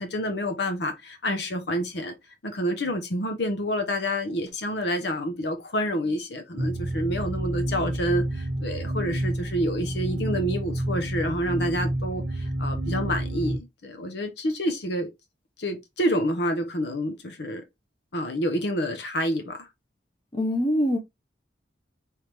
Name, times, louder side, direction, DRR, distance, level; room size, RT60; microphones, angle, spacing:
voice 1, 0.0-2.1 2.4-15.1 15.6-17.6 18.1-19.7, equal, 65° left, 0.8 m, -28 dB
sound 1, 6.6-13.6, right 1 dB, 55° right, 0.8 m, -29 dB
voice 2, 20.3-21.0, equal, 25° left, 1.0 m, -23 dB
4.5 x 3.3 x 3.2 m
head